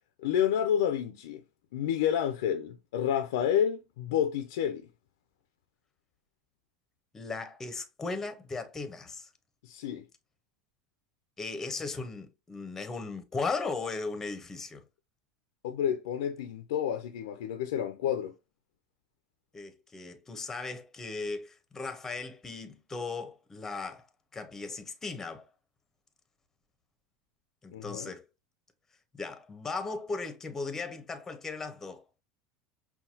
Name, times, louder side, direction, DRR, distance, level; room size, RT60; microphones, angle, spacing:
voice 1, 0.2-1.4 1.7-4.9 9.6-10.0 15.6-18.3 27.7-28.1, left 9 dB, 80° left, 0.5 m, -29 dB
voice 2, 7.1-9.3 11.4-14.8 19.5-24.1 24.3-25.5 27.6-28.2 29.2-32.0, left 4 dB, 20° left, 0.8 m, -37 dB
5.6 x 2.3 x 2.7 m
supercardioid pair, 110°, 2 cm